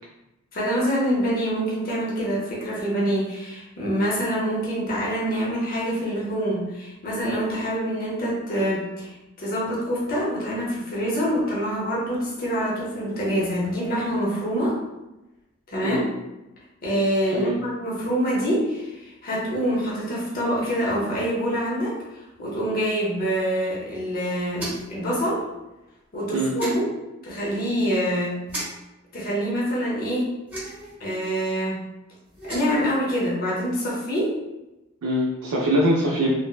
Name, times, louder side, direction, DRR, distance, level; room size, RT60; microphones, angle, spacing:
voice 1, 0.5-14.8 15.7-16.0 16.8-25.4 26.1-26.8 27.2-28.4 29.1-30.3 31.0-31.8 32.5-34.3, equal, 45° left, -6 dB, 0.7 m, -25 dB
sound 1, 24.5-25.0 26.6-26.8 28.5-28.6 30.5-30.9 32.3-32.8, right 1 dB, 10° right, 0.9 m, -32 dB
voice 2, 35.0-36.3, right 1 dB, 70° right, -4 dB, 0.4 m, -22 dB
3.2 x 2.0 x 2.2 m, 0.98 s
head